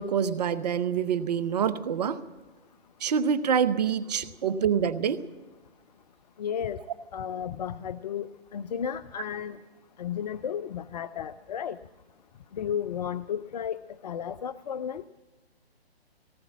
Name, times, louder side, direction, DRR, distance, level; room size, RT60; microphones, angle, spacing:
voice 1, 0.0-2.2 3.0-5.2, right 7 dB, 40° right, 13 dB, 0.9 m, -26 dB
voice 2, 6.4-6.8 7.1-9.6 10.0-11.8 12.5-15.0, left 8 dB, 40° left, 16 dB, 0.6 m, -33 dB
19.0 x 18.5 x 7.3 m, 1.2 s
figure-of-eight pair, 135°, 31 cm